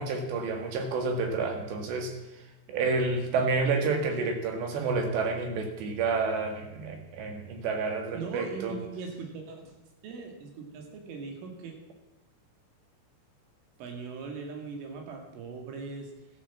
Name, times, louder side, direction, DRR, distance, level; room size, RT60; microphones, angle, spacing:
voice 1, 0.0-2.1 2.7-8.8, right 4 dB, 65° right, 4 dB, 4.1 m, -29 dB
voice 2, 8.1-9.7 10.0-11.7 13.8-16.1, right 4 dB, 85° right, 2 dB, 4.8 m, -40 dB
13.5 x 13.0 x 7.3 m, 1.0 s
omnidirectional pair, 5.5 m